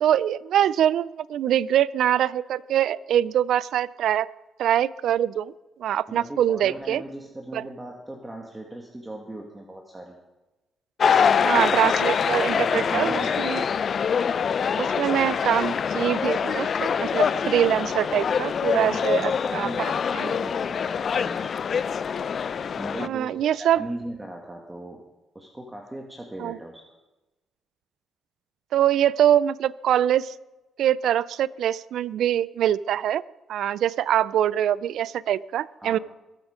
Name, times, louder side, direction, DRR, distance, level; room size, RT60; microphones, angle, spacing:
voice 1, 0.0-4.3 4.6-5.5 5.8-7.0 7.5-7.6 11.4-13.6 14.8-20.3 23.0-23.8 26.4-26.6 28.7-30.3 30.8-33.2 33.5-36.0, right 10 dB, 75° right, 20 dB, 0.4 m, -24 dB
voice 2, 6.1-10.2 12.2-13.7 18.7-21.5 22.8-25.0 25.3-26.8 35.8-36.0, right 1 dB, 15° right, 0 dB, 1.9 m, -39 dB
sound 1, 11.0-23.1, left 6 dB, 50° left, 0.5 m, -24 dB
22.0 x 8.3 x 5.1 m, 1.0 s
cardioid pair, 90°, 0 cm